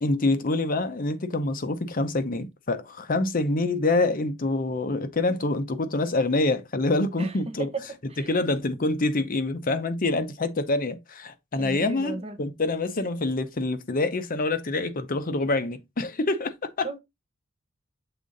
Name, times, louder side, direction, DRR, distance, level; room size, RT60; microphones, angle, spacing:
voice 1, 0.0-7.7 8.2-16.9, left 2 dB, 45° left, 0.7 m, -26 dB
voice 2, 7.2-7.8 8.1-8.3 11.6-12.4 16.8-17.0, right 3 dB, 30° right, 0.9 m, -35 dB
6.9 x 3.7 x 4.0 m
head